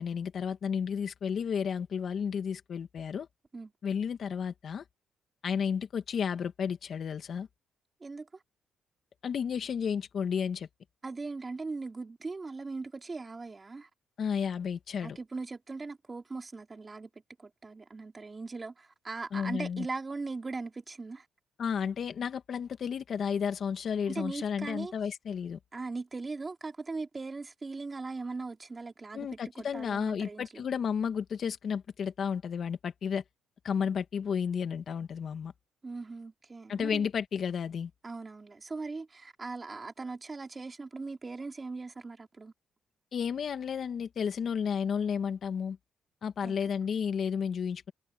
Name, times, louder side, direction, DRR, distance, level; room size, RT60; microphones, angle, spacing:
voice 1, 0.0-3.3 3.8-4.8 5.4-7.5 9.2-10.7 14.2-15.2 19.3-19.9 21.6-25.6 29.1-33.2 33.6-35.5 36.7-37.9 43.1-45.8 46.2-47.9, left 7 dB, 55° left, 2.1 m, -32 dB
voice 2, 8.0-8.4 11.0-13.9 15.0-17.1 17.4-21.3 24.1-24.9 25.7-29.3 29.6-30.6 35.8-37.1 38.0-42.5 46.4-46.6, right 3 dB, 25° right, 3.5 m, -39 dB
cardioid pair, 90°, 0 cm